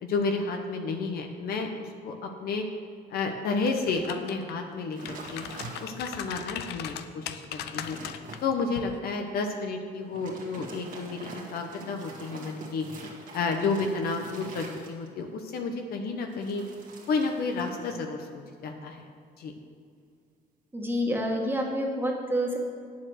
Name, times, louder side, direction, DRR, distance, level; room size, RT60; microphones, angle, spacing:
voice 1, 0.0-2.6 3.1-5.4 5.8-8.0 8.4-12.9 13.3-16.6 17.1-19.0 19.4-19.5, left 4 dB, 65° left, 4 dB, 1.0 m, -31 dB
sound 1, 3.6-4.5 4.9-8.4 8.8-9.0, left 10 dB, 80° left, 0.6 m, -39 dB
sound 2, 5.0-6.3 6.8-6.9 7.3-8.5 10.0-15.3 16.3-18.0 18.3-18.7, right 3 dB, 50° right, 1.9 m, -45 dB
voice 2, 20.7-22.6, equal, 15° right, 0 dB, 1.7 m, -28 dB
8.9 x 7.3 x 6.4 m, 2.3 s
cardioid pair, 110°, 17 cm